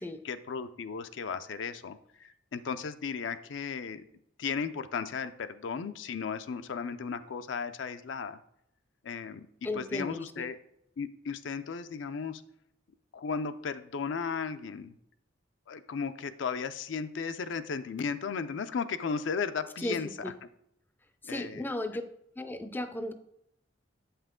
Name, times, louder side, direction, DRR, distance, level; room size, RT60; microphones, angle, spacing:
voice 1, 0.2-4.0 4.4-8.4 9.0-9.5 9.7-10.6 11.0-12.4 13.1-14.9 15.7-20.3 21.2-21.7, left 5 dB, 75° left, 10 dB, 0.4 m, -35 dB
voice 2, 9.6-10.5 19.8-20.3 21.2-22.0 22.4-23.1, left 1 dB, 10° left, 10 dB, 0.4 m, -35 dB
8.0 x 5.6 x 3.7 m, 0.79 s
head